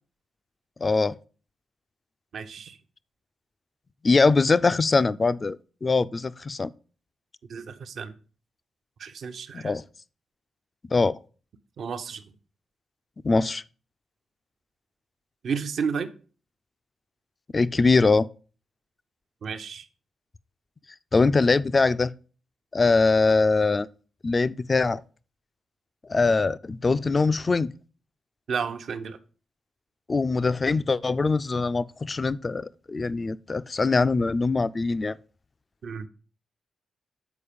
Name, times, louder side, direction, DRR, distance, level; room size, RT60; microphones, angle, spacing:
voice 1, 0.8-1.2 4.0-5.6 5.8-6.7 9.5-9.8 10.9-11.2 13.2-13.6 17.5-18.3 21.1-22.1 22.7-23.9 24.2-25.0 26.1-27.7 30.1-35.1, left 3 dB, 35° left, 0.3 m, -22 dB
voice 2, 2.3-2.8 7.5-8.1 9.0-9.8 11.8-12.2 15.4-16.1 19.4-19.9 28.5-29.2 35.8-36.1, right 6 dB, 65° right, 0.7 m, -32 dB
7.1 x 4.2 x 5.0 m
supercardioid pair, 55°, 0 cm